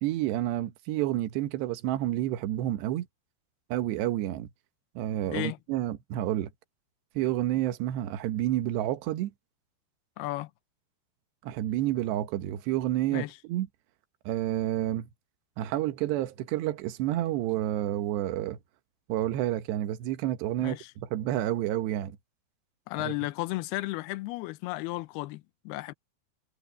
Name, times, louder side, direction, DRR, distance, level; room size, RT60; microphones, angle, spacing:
voice 1, 0.0-3.1 3.7-4.5 5.0-6.5 7.2-9.3 11.4-13.7 14.3-15.1 15.6-18.6 19.1-22.1 23.0-23.1, right 13 dB, 75° right, 3.4 m, -29 dB
voice 2, 10.2-10.5 13.1-13.4 20.6-20.9 22.9-25.9, left 19 dB, 80° left, 2.5 m, -34 dB
omnidirectional pair, 5.1 m